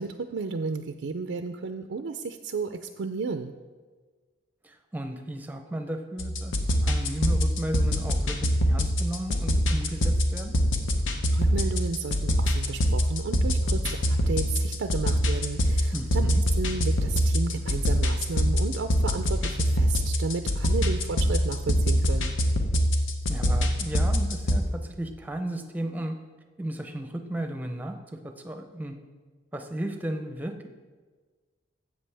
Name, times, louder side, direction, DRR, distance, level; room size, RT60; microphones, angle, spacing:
voice 1, 0.0-3.5 11.3-22.3, right 4 dB, 85° right, 7 dB, 0.4 m, -33 dB
voice 2, 4.6-6.5 6.8-10.6 15.9-16.4 23.3-26.2 26.6-28.0 28.2-28.9 29.5-30.7, right 1 dB, 10° right, 5 dB, 0.6 m, -34 dB
sound 1, 6.2-24.6, equal, 90° left, 0.9 m, -25 dB
12.5 x 7.9 x 3.4 m, 1.4 s
head